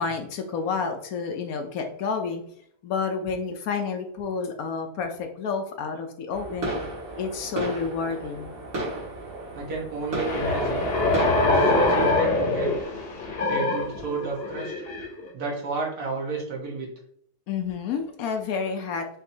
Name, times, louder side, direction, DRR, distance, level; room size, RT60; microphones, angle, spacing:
voice 1, 0.0-2.4 2.8-6.7 7.2-8.6 17.5-19.1, left 5 dB, 70° left, 5 dB, 1.0 m, -30 dB
sound 1, 6.3-12.1, right 2 dB, 50° right, 2.0 m, -33 dB
voice 2, 9.5-10.9 11.4-12.7 13.5-14.7 15.3-16.9, right 3 dB, 65° right, -2 dB, 1.7 m, -31 dB
sound 2, 10.3-15.3, left 2 dB, 45° left, 0.9 m, -24 dB
5.8 x 2.8 x 2.7 m, 0.66 s
omnidirectional pair, 1.7 m